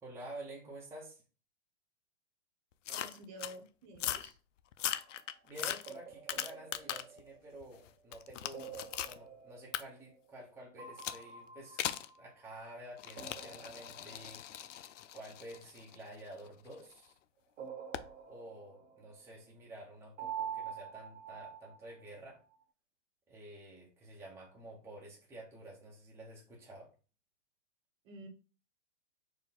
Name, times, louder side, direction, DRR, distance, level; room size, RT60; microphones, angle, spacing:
voice 1, 0.0-1.2 5.4-11.8 12.2-14.4 15.1-17.2 18.2-22.4 23.3-26.9, right 1 dB, 5° right, -3 dB, 1.0 m, -50 dB
sound 1, 2.9-3.6 3.9-4.3 4.7-7.2 7.6-9.2 9.7-9.8 11.0-11.2 11.8-12.1 13.0-16.9 17.9-18.1, left 11 dB, 80° left, 0.5 m, -40 dB
voice 2, 2.9-4.4 28.0-28.3, right 1 dB, 40° right, 3 dB, 1.2 m, -50 dB
sound 2, 4.8-5.3 5.9-7.9 8.5-10.5 10.8-12.8 13.1-14.9 17.6-19.4 20.2-22.2, right 8 dB, 70° right, 1.4 m, -47 dB
4.5 x 2.6 x 3.9 m, 0.35 s
hypercardioid pair, 130°, 37 cm